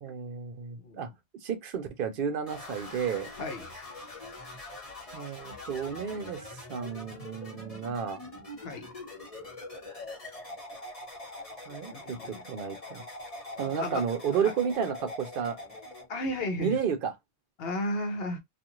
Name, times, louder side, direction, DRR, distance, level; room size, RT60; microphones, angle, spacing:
voice 1, 0.0-1.1 1.4-3.3 5.1-8.2 11.7-13.0 13.6-15.6 16.6-17.1, right 7 dB, 60° right, 0.7 m, -32 dB
sound 1, 2.5-16.1, left 2 dB, 35° left, 1.2 m, -44 dB
voice 2, 11.9-12.4 13.6-14.0 14.4-14.5 16.1-16.8 17.6-18.4, left 1 dB, 65° left, 0.9 m, -33 dB
2.4 x 2.4 x 2.9 m
omnidirectional pair, 1.1 m